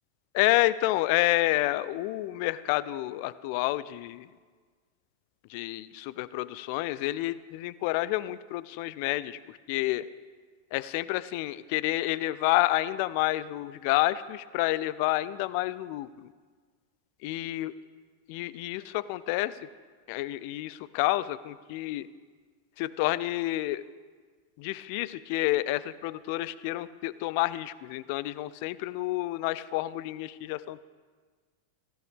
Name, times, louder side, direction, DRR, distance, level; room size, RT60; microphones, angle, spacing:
voice 1, 0.3-4.3 5.5-9.4 9.7-10.0 10.7-16.1 17.2-17.7 18.3-19.5 20.1-22.1 22.8-23.8 24.6-30.8, left 17 dB, 45° left, 18 dB, 0.5 m, -29 dB
17.5 x 14.5 x 3.6 m, 1.5 s
figure-of-eight pair, 90°, 0 cm